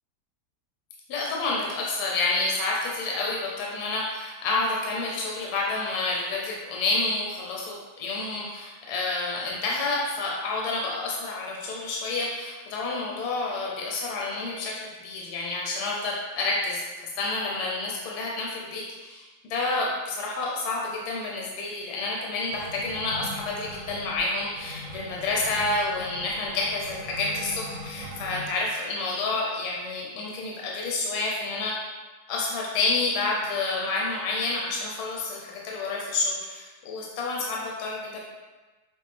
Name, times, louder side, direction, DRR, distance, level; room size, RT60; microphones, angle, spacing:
voice 1, 1.1-31.7 32.3-38.2, left 3 dB, 75° left, -3 dB, 1.2 m, -29 dB
sound 1, 22.4-28.6, equal, 65° right, 0.8 m, -41 dB
5.2 x 2.3 x 3.3 m, 1.2 s
omnidirectional pair, 1.8 m